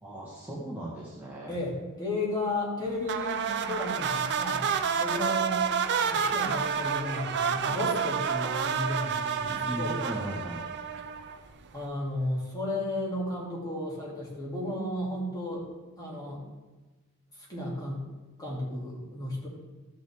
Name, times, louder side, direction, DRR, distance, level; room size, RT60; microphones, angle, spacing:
voice 1, 0.0-1.5 9.4-10.7, right 1 dB, 10° right, -7 dB, 1.4 m, -38 dB
voice 2, 1.5-4.6 4.9-5.6 6.0-10.0 11.7-15.7 16.0-16.4 17.4-18.0 18.4-19.5, left 1 dB, 15° left, -5 dB, 2.5 m, -33 dB
sound 1, 3.1-11.5, right 6 dB, 50° right, 0.6 m, -29 dB
13.5 x 6.1 x 3.5 m, 1.2 s
head